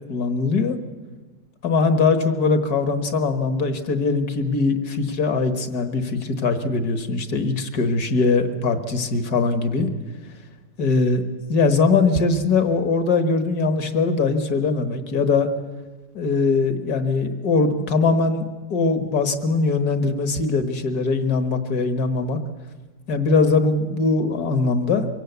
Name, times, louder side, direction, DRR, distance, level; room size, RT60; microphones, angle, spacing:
voice 1, 0.1-0.8 1.6-9.9 10.8-11.2 11.5-15.5 16.1-22.4 23.1-25.1, left 4 dB, 60° left, 9 dB, 1.9 m, -21 dB
23.5 x 16.5 x 8.1 m, 1.3 s
omnidirectional pair, 1.9 m